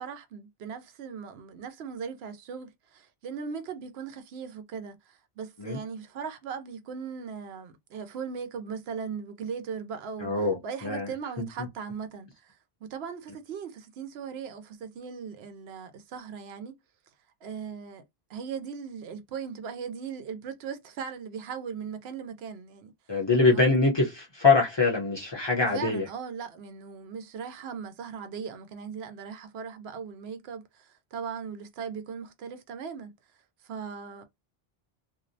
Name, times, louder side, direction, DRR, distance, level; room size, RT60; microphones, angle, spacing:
voice 1, 0.0-10.3 10.6-16.8 17.4-18.0 18.3-22.9 23.5-23.7 25.7-33.1 33.6-34.2, right 6 dB, 85° right, 0.8 m, -38 dB
voice 2, 10.2-11.1 11.4-11.7 23.1-26.1, left 3 dB, 30° left, 0.6 m, -24 dB
2.6 x 2.0 x 2.6 m
omnidirectional pair, 1.0 m